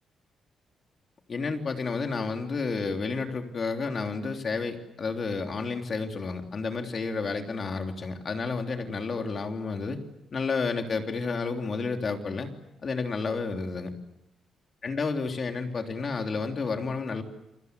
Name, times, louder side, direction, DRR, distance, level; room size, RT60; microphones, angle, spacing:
voice 1, 1.3-10.0 10.3-12.5 12.8-13.9 14.8-17.2, left 4 dB, 40° left, 4 dB, 3.3 m, -31 dB
29.0 x 25.0 x 8.2 m, 0.92 s
cardioid pair, 135°, 0 cm